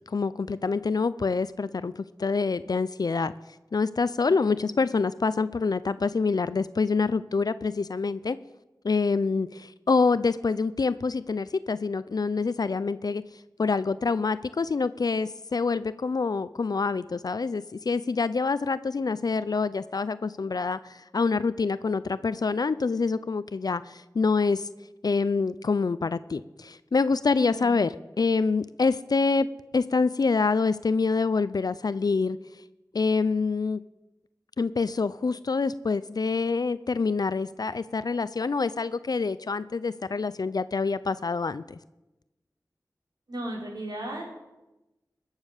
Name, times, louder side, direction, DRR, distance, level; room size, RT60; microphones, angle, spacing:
voice 1, 0.1-1.9 2.2-3.3 3.7-8.4 8.8-13.2 13.6-24.7 25.0-29.5 29.7-32.4 32.9-33.8 34.6-41.8, left 4 dB, 65° left, 15 dB, 0.4 m, -26 dB
voice 2, 4.2-4.5 27.3-27.8 43.3-44.4, right 1 dB, 70° right, -1 dB, 4.1 m, -37 dB
21.0 x 7.3 x 6.6 m, 1.0 s
wide cardioid pair, 75°, 7 cm